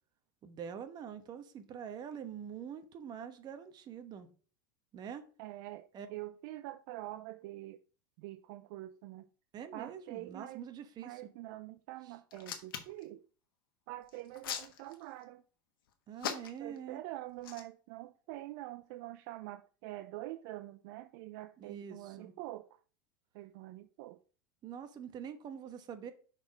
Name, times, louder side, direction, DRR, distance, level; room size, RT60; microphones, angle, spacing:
voice 1, 0.4-4.3 4.9-5.2 5.9-6.1 9.5-11.2 16.1-17.0 21.6-22.3 24.6-26.1, right 8 dB, 35° right, 1.1 m, -45 dB
voice 2, 5.4-7.8 8.2-9.3 9.7-10.6 11.0-13.3 13.9-15.4 16.6-22.8 23.3-24.2, right 16 dB, 60° right, 0.4 m, -45 dB
Hands, 12.3-13.0 14.1-15.2 16.2-16.8 17.4-17.6, left 8 dB, 80° left, 1.2 m, -39 dB
6.1 x 4.1 x 4.7 m
supercardioid pair, 115°, 12 cm